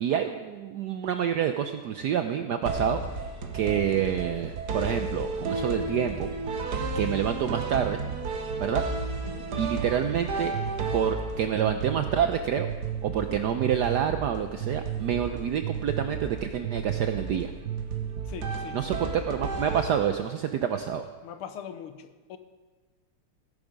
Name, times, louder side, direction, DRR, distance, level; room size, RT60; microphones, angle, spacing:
voice 1, 0.0-3.0 3.5-6.3 6.9-8.0 8.6-8.8 9.6-10.5 10.9-12.7 13.0-17.5 18.7-21.1, right 9 dB, 75° right, 8 dB, 0.9 m, -27 dB
sound 1, 2.7-20.5, right 4 dB, 55° right, 1.5 m, -33 dB
voice 2, 9.2-9.8 18.3-18.8 21.2-22.4, left 8 dB, 80° left, 10 dB, 1.7 m, -42 dB
16.5 x 10.0 x 5.1 m, 1.4 s
omnidirectional pair, 2.4 m